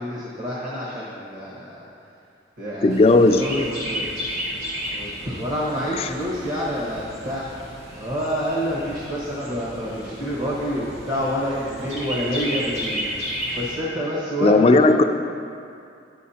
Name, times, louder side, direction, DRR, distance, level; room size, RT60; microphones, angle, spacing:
voice 1, 0.0-1.8 2.6-3.0 3.3-4.1 4.9-7.4 8.0-13.1 13.6-14.8, equal, 45° right, -7 dB, 1.3 m, -27 dB
voice 2, 2.8-3.4 6.0-6.1 14.4-15.0, left 3 dB, 35° left, 7 dB, 0.3 m, -15 dB
Chirp tweet, 2.9-13.7, equal, 75° right, 2.0 m, -33 dB
11.5 x 8.4 x 2.8 m, 2.5 s
head